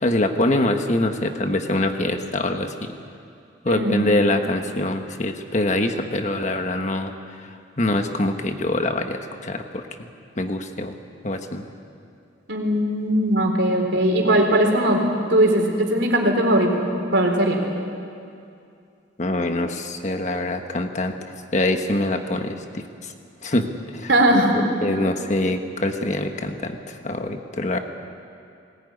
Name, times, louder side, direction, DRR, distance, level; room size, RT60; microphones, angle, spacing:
voice 1, 0.0-2.7 3.6-10.1 10.4-10.9 11.2-11.6 19.2-21.1 21.5-23.1 23.4-24.1 24.8-27.8, left 1 dB, 40° left, 5 dB, 1.3 m, -24 dB
voice 2, 3.7-4.0 12.5-15.0 15.3-16.8 17.1-17.6 24.1-24.5, right 1 dB, 65° right, 1 dB, 4.0 m, -19 dB
20.5 x 19.0 x 9.8 m, 2.5 s
head